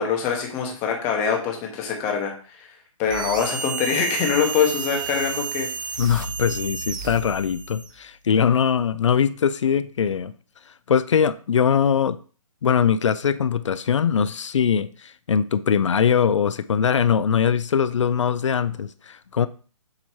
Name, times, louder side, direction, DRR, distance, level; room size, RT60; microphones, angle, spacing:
voice 1, 0.0-2.7 3.0-5.7, left 7 dB, 10° left, 0.7 m, -24 dB
sound 1, 3.1-8.0, right 6 dB, 35° right, 0.5 m, -31 dB
voice 2, 6.0-10.3 10.9-12.2 12.6-19.5, left 7 dB, 55° left, 0.4 m, -21 dB
7.4 x 2.8 x 4.6 m
hypercardioid pair, 165°, 18 cm